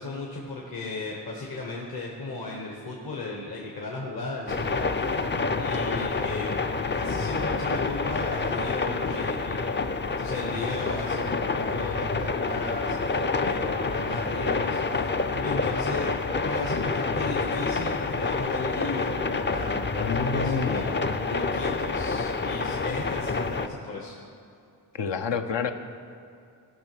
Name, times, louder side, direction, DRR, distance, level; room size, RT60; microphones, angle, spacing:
voice 1, 0.0-6.6 6.9-9.6 10.2-24.1, left 2 dB, 55° left, -1 dB, 1.3 m, -35 dB
sound 1, 4.5-23.7, left 4 dB, 25° left, 0.5 m, -28 dB
voice 2, 19.9-20.8 24.9-25.7, left 5 dB, 70° left, 7 dB, 0.8 m, -28 dB
12.5 x 5.8 x 6.2 m, 2.5 s
cardioid pair, 55°, 45 cm